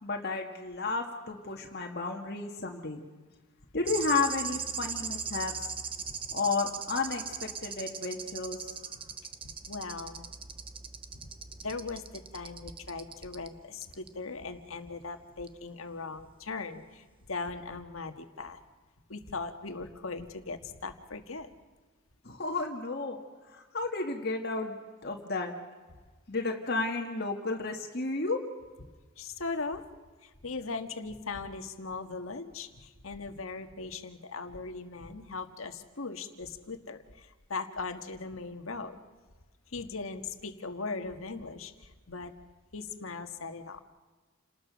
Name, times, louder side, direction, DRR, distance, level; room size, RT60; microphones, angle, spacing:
voice 1, 0.0-3.0 3.7-5.5 6.3-8.7 22.3-23.2 23.5-25.5 26.3-28.4, left 3 dB, 50° left, 2 dB, 1.8 m, -32 dB
sound 1, 3.8-13.5 13.8-14.1 15.5-15.6, right 6 dB, 25° right, 0.9 m, -40 dB
voice 2, 9.7-10.3 11.6-18.6 19.1-21.5 29.2-29.8 30.2-39.0 39.7-42.3 42.7-43.8, left 4 dB, 80° left, 7 dB, 1.7 m, -39 dB
29.0 x 20.0 x 6.3 m, 1.4 s
head